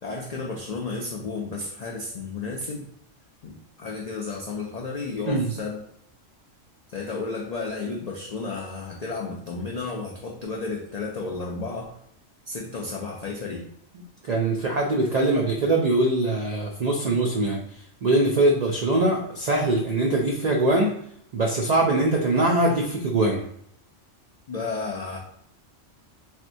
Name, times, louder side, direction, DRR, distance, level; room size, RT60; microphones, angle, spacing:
voice 1, 0.0-2.8 3.4-5.8 6.9-11.9 12.5-13.6 24.5-25.2, left 3 dB, 90° left, -2 dB, 0.3 m, -32 dB
voice 2, 14.2-17.6 18.0-20.9 21.3-23.4, right 2 dB, 85° right, -1 dB, 0.3 m, -22 dB
4.3 x 2.1 x 2.5 m, 0.69 s
omnidirectional pair, 1.3 m